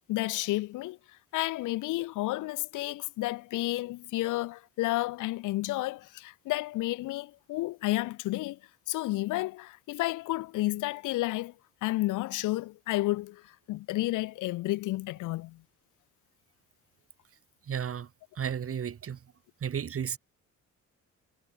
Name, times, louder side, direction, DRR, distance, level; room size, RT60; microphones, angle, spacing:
voice 1, 0.1-1.0 1.3-8.6 8.9-11.5 11.8-15.6, left 18 dB, 85° left, 0.7 m, -31 dB
voice 2, 17.7-18.1 18.4-19.2 19.6-20.2, right 8 dB, 50° right, 2.2 m, -33 dB
cardioid pair, 90°, 30 cm